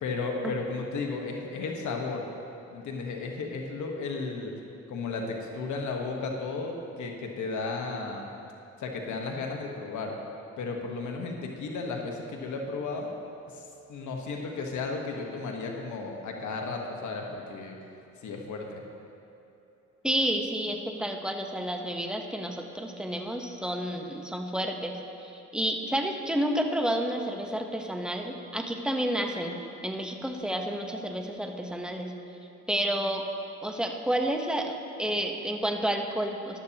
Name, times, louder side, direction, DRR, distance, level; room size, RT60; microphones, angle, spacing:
voice 1, 0.0-2.3 2.7-4.5 4.9-8.3 8.8-10.1 10.6-13.1 13.5-17.8 18.2-18.8, left 3 dB, 75° left, 1 dB, 1.3 m, -34 dB
voice 2, 20.0-25.0 25.3-32.1 32.7-33.2 33.6-36.6, right 1 dB, 5° right, 3 dB, 1.0 m, -30 dB
14.5 x 11.5 x 2.9 m, 2.8 s
cardioid pair, 90°, 30 cm